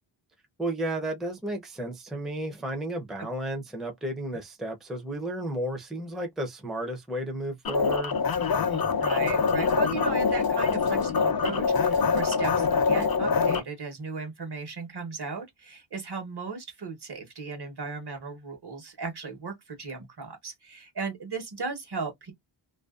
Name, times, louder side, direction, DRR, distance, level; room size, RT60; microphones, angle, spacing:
voice 1, 0.6-8.2, right 1 dB, ahead, 0.5 m, -33 dB
sound 1, 7.6-13.6, left 5 dB, 50° left, 0.6 m, -24 dB
voice 2, 8.7-22.3, right 4 dB, 55° right, 1.1 m, -36 dB
2.5 x 2.1 x 2.3 m
wide cardioid pair, 95°, 48 cm